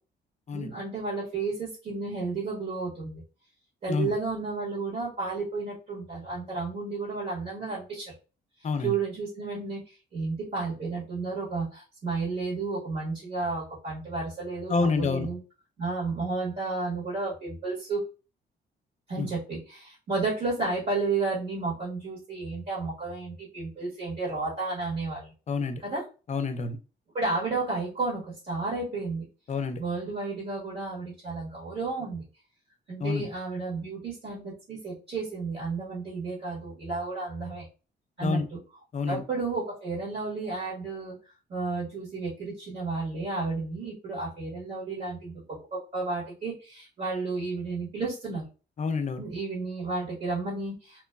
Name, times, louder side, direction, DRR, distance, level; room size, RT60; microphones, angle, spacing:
voice 1, 0.5-3.2 3.8-8.1 8.8-15.4 15.8-18.0 19.1-25.3 25.8-26.0 27.1-29.3 29.8-32.2 32.9-37.6 38.2-38.4 39.1-41.1 41.5-48.5 49.2-51.1, right 3 dB, 55° right, -6 dB, 1.5 m, -32 dB
voice 2, 14.7-15.3 19.2-19.3 25.5-25.8 26.3-26.8 29.5-29.8 33.0-33.2 38.2-38.5 38.9-39.2 48.8-49.2, left 4 dB, 35° left, 9 dB, 0.5 m, -28 dB
2.9 x 2.2 x 2.3 m, 0.33 s
cardioid pair, 90°, 20 cm